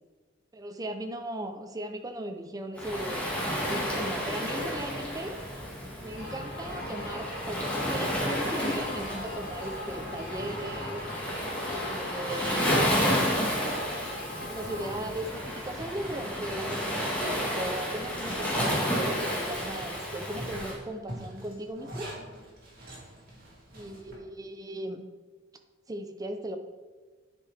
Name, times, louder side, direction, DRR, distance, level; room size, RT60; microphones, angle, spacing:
voice 1, 0.5-5.4 6.0-11.0 11.8-12.9 14.4-22.1 23.7-25.1 25.9-26.6, right 1 dB, 20° right, 6 dB, 0.6 m, -37 dB
Waves surf, 2.8-20.7, equal, 5° left, 1.5 m, -31 dB
sound 1, 6.1-15.0, left 1 dB, 40° left, 2.0 m, -40 dB
Zipper (clothing), 10.4-17.0 17.4-17.5 17.9-24.2, right 1 dB, 50° right, 2.1 m, -45 dB
10.0 x 4.7 x 3.4 m, 1.3 s
head